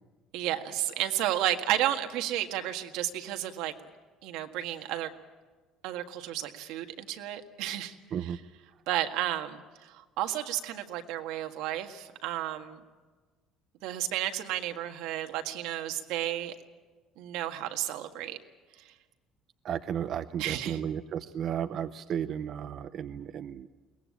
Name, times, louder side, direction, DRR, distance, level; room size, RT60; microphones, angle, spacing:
voice 1, 0.3-3.7 4.2-5.1 5.8-8.4 8.9-12.8 13.8-16.5 17.2-18.4 18.9-19.0 20.4-20.8, right 12 dB, 80° right, 6 dB, 1.7 m, -32 dB
voice 2, 19.6-23.7, right 9 dB, 40° right, 10 dB, 0.6 m, -34 dB
22.5 x 19.0 x 8.7 m, 1.4 s
cardioid pair, 165°, 0 cm